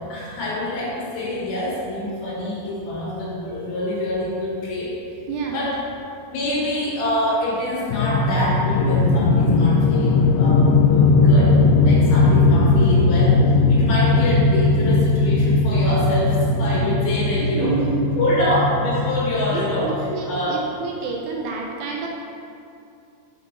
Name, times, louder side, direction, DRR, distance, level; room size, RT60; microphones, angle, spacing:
voice 1, 0.1-4.9 5.5-5.8 6.3-11.6 11.8-13.4 13.7-17.7 18.2-20.6, left 1 dB, 65° left, -6 dB, 3.2 m, -25 dB
voice 2, 5.3-5.6 17.5-18.0 19.5-22.1, right 4 dB, 80° right, 0 dB, 2.6 m, -28 dB
sound 1, 7.9-20.1, left 3 dB, 85° left, 2.4 m, -18 dB
7.1 x 5.2 x 5.2 m, 2.5 s
omnidirectional pair, 5.1 m